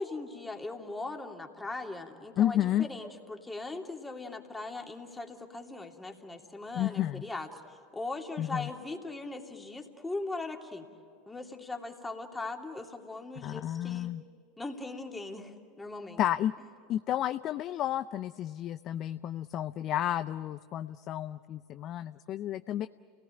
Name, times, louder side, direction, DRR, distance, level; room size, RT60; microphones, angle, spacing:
voice 1, 0.0-10.9 11.3-14.1 14.6-16.2, left 2 dB, 10° left, 2 dB, 2.8 m, -39 dB
voice 2, 2.4-2.9 6.7-7.2 8.4-8.7 13.4-14.2 16.2-16.5 16.9-22.9, left 12 dB, 45° left, 13 dB, 0.5 m, -31 dB
30.0 x 18.5 x 9.1 m, 2.4 s
hypercardioid pair, 85°, 0 cm